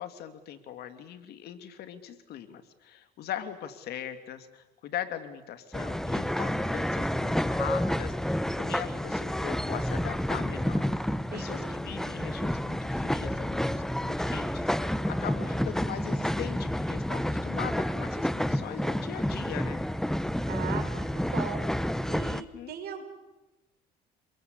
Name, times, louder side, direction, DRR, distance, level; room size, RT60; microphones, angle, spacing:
voice 1, 0.0-10.8 11.3-19.8 22.3-22.8, left 10 dB, 70° left, 9 dB, 2.8 m, -40 dB
sound 1, 5.7-22.4, left 1 dB, 5° left, 0.9 m, -30 dB
voice 2, 11.3-11.8 20.5-21.7 22.1-23.1, right 8 dB, 65° right, 8 dB, 4.9 m, -39 dB
28.5 x 22.0 x 8.3 m, 1.0 s
cardioid pair, 110°, 17 cm